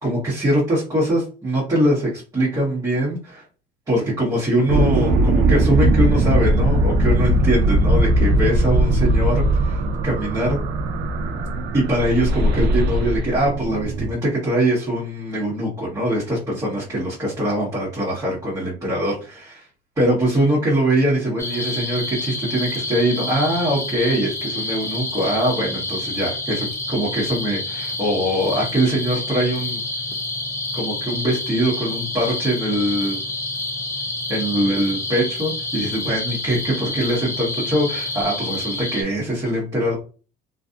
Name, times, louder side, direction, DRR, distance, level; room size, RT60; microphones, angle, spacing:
voice 1, 0.0-3.4 3.9-10.6 11.7-19.7 20.0-29.8 30.7-33.2 34.3-39.9, right 1 dB, 20° right, -7 dB, 1.2 m, -22 dB
sound 1, 4.7-14.1, right 1 dB, 80° right, 0.5 m, -19 dB
sound 2, 21.4-39.0, left 2 dB, 15° left, 0.6 m, -28 dB
2.6 x 2.5 x 2.4 m, 0.36 s
cardioid pair, 110°, 17 cm